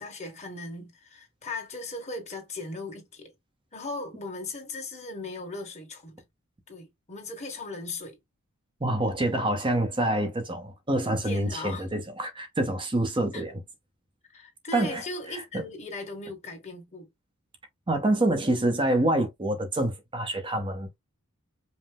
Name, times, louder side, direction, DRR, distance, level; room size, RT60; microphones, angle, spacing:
voice 1, 0.0-3.3 3.7-6.2 6.7-8.2 11.2-11.9 13.3-13.4 14.3-17.1, left 2 dB, 30° left, 1.4 m, -38 dB
voice 2, 8.8-13.6 14.7-15.4 17.9-21.0, right 1 dB, 25° right, 0.6 m, -27 dB
5.2 x 2.0 x 3.4 m
head